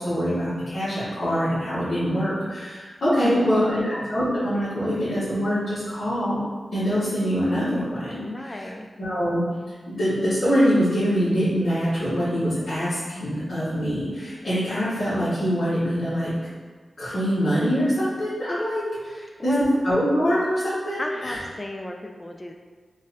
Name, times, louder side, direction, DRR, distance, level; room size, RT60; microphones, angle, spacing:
voice 1, 0.0-6.4 6.7-8.7 9.0-9.4 9.9-16.3 17.0-21.4, equal, 75° left, -15 dB, 1.4 m, -24 dB
voice 2, 3.2-3.8 8.2-8.9 19.4-19.8 21.0-22.5, left 1 dB, 25° left, 3 dB, 0.4 m, -33 dB
3.8 x 2.6 x 2.6 m, 1.5 s
cardioid pair, 50°, 0 cm